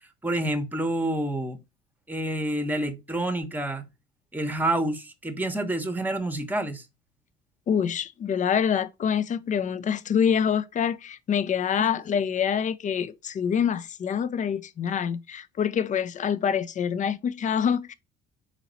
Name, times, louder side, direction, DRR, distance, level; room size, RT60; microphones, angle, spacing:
voice 1, 0.2-1.6 2.1-3.9 4.3-6.9 11.8-11.9, right 1 dB, 10° right, 0.9 m, -28 dB
voice 2, 7.7-17.9, left 7 dB, 35° left, 0.5 m, -26 dB
4.0 x 2.9 x 4.0 m
supercardioid pair, 75°, 21 cm